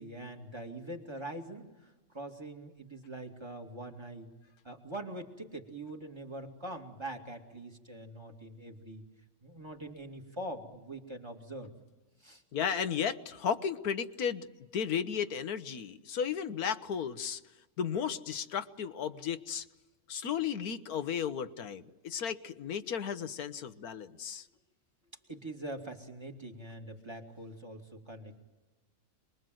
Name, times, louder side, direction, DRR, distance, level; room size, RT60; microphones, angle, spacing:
voice 1, 0.0-4.3 4.6-9.1 9.4-11.7 12.2-12.4 25.3-28.4, right 1 dB, 20° right, 2 dB, 2.5 m, -43 dB
voice 2, 12.5-14.5 14.7-17.4 17.8-19.6 20.1-24.5, left 7 dB, 85° left, 11 dB, 1.6 m, -34 dB
27.5 x 22.0 x 7.8 m, 1.2 s
omnidirectional pair, 1.5 m